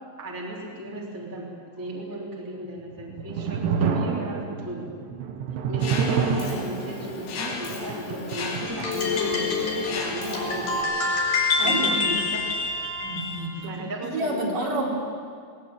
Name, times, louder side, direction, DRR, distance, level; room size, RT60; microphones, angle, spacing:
voice 1, 0.2-4.9 5.7-10.8 11.6-12.4 13.5-14.8, right 1 dB, 5° right, -3 dB, 2.6 m, -35 dB
sound 1, 2.8-10.0, right 6 dB, 75° right, 3.6 m, -29 dB
Mechanisms, 5.8-10.8, left 4 dB, 75° left, 4.7 m, -35 dB
sound 2, 8.7-13.4, left 4 dB, 50° left, 5.4 m, -26 dB
voice 2, 11.6-12.0 13.0-13.7 14.0-14.9, right 1 dB, 50° right, -2 dB, 4.6 m, -29 dB
20.0 x 19.5 x 9.0 m, 2.1 s
omnidirectional pair, 5.2 m